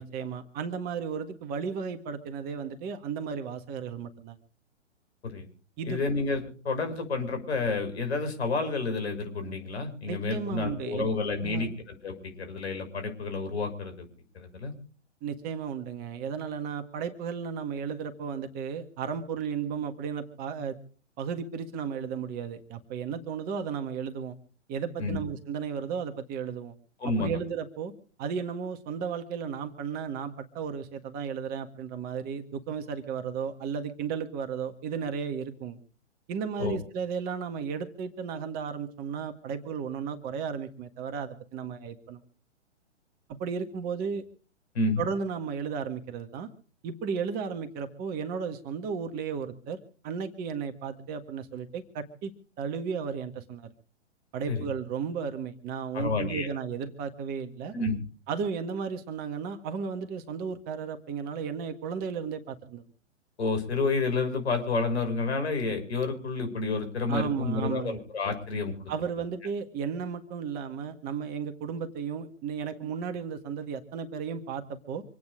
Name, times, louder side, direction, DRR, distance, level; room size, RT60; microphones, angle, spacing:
voice 1, 0.0-4.4 5.8-6.0 10.1-11.0 11.4-11.7 15.2-20.8 21.2-24.3 24.7-26.7 27.2-27.9 28.2-35.8 36.3-42.2 43.4-44.2 45.0-46.5 46.8-49.8 50.0-52.3 52.6-53.7 54.3-57.7 58.3-62.8 67.1-68.0 68.9-75.0, right 6 dB, 25° right, 7 dB, 1.7 m, -34 dB
voice 2, 5.8-14.0 14.3-14.7 25.0-25.2 27.0-27.3 36.6-36.8 44.7-45.0 54.5-54.6 55.9-56.5 57.7-58.0 63.4-68.9, left 3 dB, 60° left, 6 dB, 6.5 m, -30 dB
26.5 x 9.5 x 5.0 m, 0.41 s
figure-of-eight pair, 120°, 36 cm